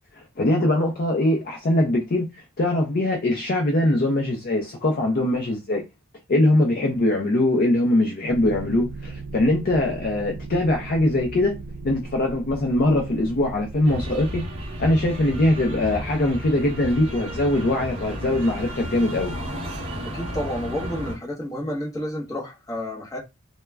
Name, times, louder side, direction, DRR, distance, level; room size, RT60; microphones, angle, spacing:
voice 1, 0.2-2.3 2.6-5.8 6.3-11.6 11.8-14.5 14.8-19.3, left 1 dB, 45° left, 0.5 m, -22 dB
sound 1, 8.3-19.5, right 3 dB, 90° right, 0.5 m, -39 dB
sound 2, 13.8-21.2, equal, 30° right, 0.6 m, -33 dB
voice 2, 20.0-23.2, equal, 15° left, 0.8 m, -30 dB
2.2 x 2.1 x 3.2 m
head